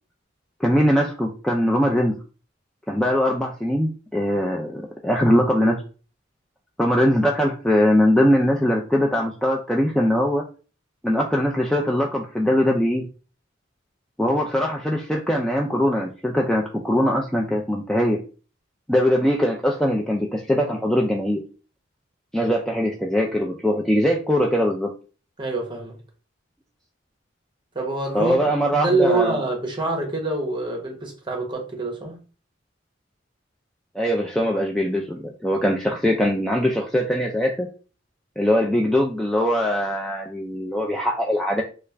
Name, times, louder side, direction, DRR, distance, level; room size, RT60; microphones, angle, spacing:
voice 1, 0.6-2.2 2.9-5.8 6.8-10.4 11.0-13.1 14.2-18.2 18.9-21.4 22.3-24.9 28.1-29.4 34.0-37.7 38.4-41.6, equal, 5° left, 0.3 m, -21 dB
voice 2, 25.4-26.0 27.7-28.4 28.8-32.2, right 3 dB, 25° right, 0.9 m, -25 dB
3.2 x 2.4 x 3.3 m
head